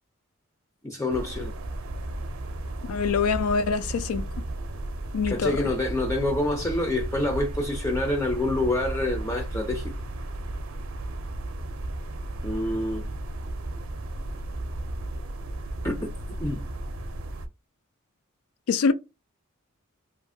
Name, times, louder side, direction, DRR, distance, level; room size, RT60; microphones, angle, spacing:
voice 1, 0.8-1.5 5.3-10.0 12.4-13.1 15.8-16.0 16.4-16.7, left 1 dB, 15° left, 0.4 m, -27 dB
sound 1, 1.1-17.5, right 1 dB, 70° right, 0.5 m, -34 dB
voice 2, 2.8-4.2 5.1-5.7 18.7-18.9, left 5 dB, 85° left, 0.4 m, -24 dB
2.7 x 2.5 x 2.6 m
head